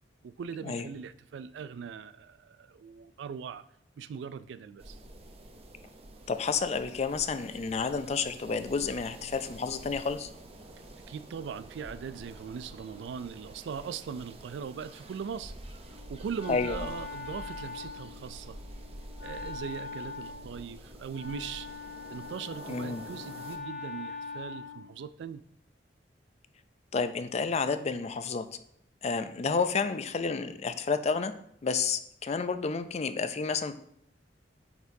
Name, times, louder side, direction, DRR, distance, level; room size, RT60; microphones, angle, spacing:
voice 1, 0.2-3.7 4.0-5.0 11.1-15.5 15.9-18.6 19.2-21.7 22.1-25.5, right 6 dB, 75° right, 0.3 m, -40 dB
sound 1, 4.8-23.6, right 1 dB, 35° right, 0.6 m, -48 dB
voice 2, 6.3-10.3 16.5-16.8 22.7-23.0 26.9-28.5 29.0-31.3 31.6-33.7, left 5 dB, 35° left, 0.4 m, -30 dB
Wind instrument woodwind instrument, 15.8-24.9, left 4 dB, 80° left, 2.6 m, -42 dB
8.3 x 4.3 x 2.7 m
head